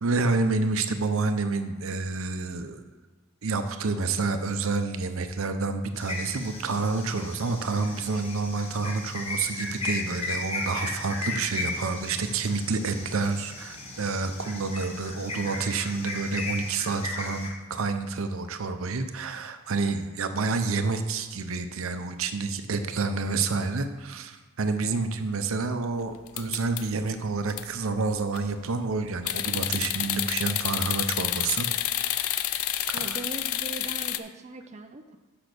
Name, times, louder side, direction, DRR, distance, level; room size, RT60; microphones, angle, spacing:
voice 1, 0.0-2.8 3.4-31.7 32.9-33.2, right 3 dB, 75° right, 8 dB, 0.6 m, -29 dB
sound 1, 6.0-17.5, left 2 dB, 30° left, 1.2 m, -36 dB
sound 2, 26.3-27.1 27.5-27.6 28.1-28.5 29.3-34.2, left 12 dB, 80° left, 0.4 m, -29 dB
voice 2, 32.9-35.2, right 3 dB, 30° right, 5 dB, 0.4 m, -40 dB
6.0 x 5.9 x 6.7 m, 1.3 s
head